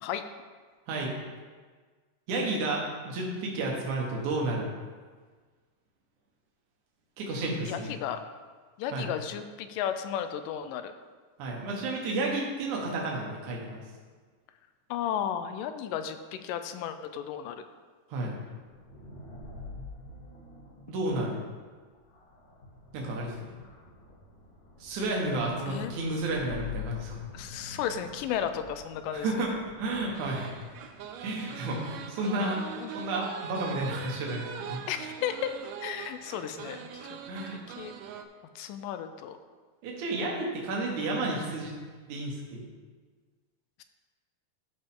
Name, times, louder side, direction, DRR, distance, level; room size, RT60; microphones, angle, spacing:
voice 1, 2.3-4.7 7.2-8.0 8.9-9.1 11.4-13.8 18.1-18.4 20.9-21.4 22.9-23.6 24.8-27.3 29.1-30.5 31.2-34.8 37.3-37.6 39.8-41.7 42.1-42.7, right 2 dB, 65° right, -1 dB, 2.8 m, -31 dB
voice 2, 7.7-8.2 8.8-10.9 14.9-17.6 25.7-25.9 27.3-29.3 32.8-33.3 34.9-35.5 35.8-37.2 37.8-37.9 38.6-39.4, left 9 dB, 85° left, 9 dB, 2.2 m, -34 dB
sound 1, 18.6-31.1, left 3 dB, 50° left, 1.1 m, -47 dB
sound 2, 30.1-38.2, right 8 dB, 85° right, 1.5 m, -42 dB
13.5 x 5.4 x 3.7 m, 1.5 s
omnidirectional pair, 3.9 m